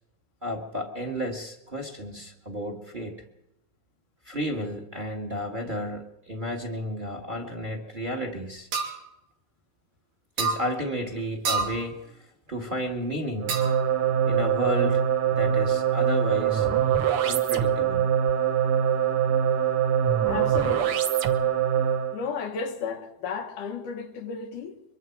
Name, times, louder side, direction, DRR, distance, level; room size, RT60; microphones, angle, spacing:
voice 1, 0.4-3.2 4.2-8.7 10.4-13.6 14.2-15.0 15.3-16.7 17.2-18.1, equal, 20° right, 1.5 m, -32 dB
sound 1, 8.7-9.0 10.4-10.6 11.5-11.8 13.5-13.9, right 4 dB, 85° right, 4.5 m, -27 dB
sound 2, 13.4-22.2, right 9 dB, 60° right, 1.6 m, -23 dB
voice 2, 20.3-21.0 22.1-24.8, left 5 dB, 85° left, 3.0 m, -33 dB
24.0 x 23.5 x 4.7 m
omnidirectional pair, 3.5 m